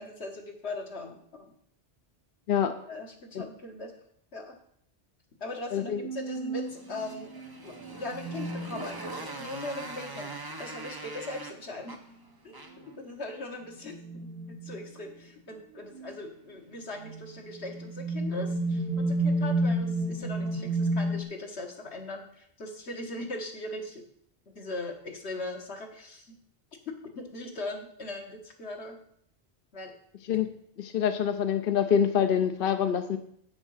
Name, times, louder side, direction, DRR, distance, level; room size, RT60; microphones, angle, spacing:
voice 1, 0.0-1.5 2.9-3.9 4.3-4.6 5.4-7.3 7.6-12.0 12.4-24.0 24.5-26.4 26.9-29.0 29.7-29.9, left 2 dB, 85° left, 2 dB, 1.9 m, -40 dB
voice 2, 5.7-6.1 30.3-30.5 30.8-33.2, left 8 dB, 60° left, 7 dB, 0.8 m, -25 dB
sound 1, 5.8-9.7 12.1-12.2 12.9-13.0 13.8-14.9 15.7-16.2 16.9-21.2, right 2 dB, 65° right, 1.5 m, -31 dB
Motorcycle, 6.6-13.0, right 2 dB, 20° right, 0.9 m, -42 dB
8.7 x 6.3 x 6.4 m, 0.66 s
omnidirectional pair, 1.1 m